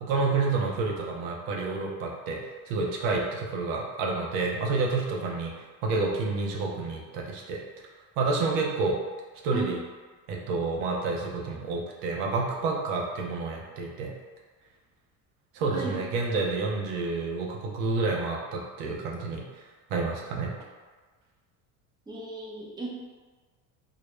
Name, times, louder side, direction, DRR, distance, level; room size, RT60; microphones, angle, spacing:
voice 1, 0.0-2.4 2.7-5.5 5.8-7.6 8.2-8.9 9.4-9.8 10.3-14.1 15.5-19.4 19.9-20.5, right 3 dB, 75° right, -1 dB, 0.6 m, -29 dB
voice 2, 15.7-16.0 22.1-22.9, right 4 dB, 10° right, -5 dB, 0.5 m, -35 dB
2.3 x 2.0 x 3.0 m, 1.4 s
supercardioid pair, 95°, 42 cm